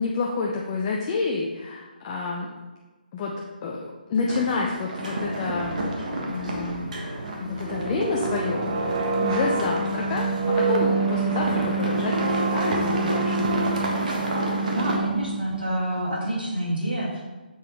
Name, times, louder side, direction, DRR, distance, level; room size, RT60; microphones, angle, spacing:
voice 1, 0.0-2.5 3.1-3.3 3.6-6.9 7.4-8.9 9.2-13.7, left 4 dB, 25° left, -1 dB, 0.6 m, -29 dB
sound 1, 4.3-15.0, right 1 dB, 55° right, 1.4 m, -30 dB
sound 2, 7.2-16.0, right 4 dB, 35° right, 0.8 m, -27 dB
voice 2, 14.7-17.2, right 1 dB, 75° right, -5 dB, 2.1 m, -27 dB
7.0 x 5.4 x 3.2 m, 1.2 s
figure-of-eight pair, 150°, 5 cm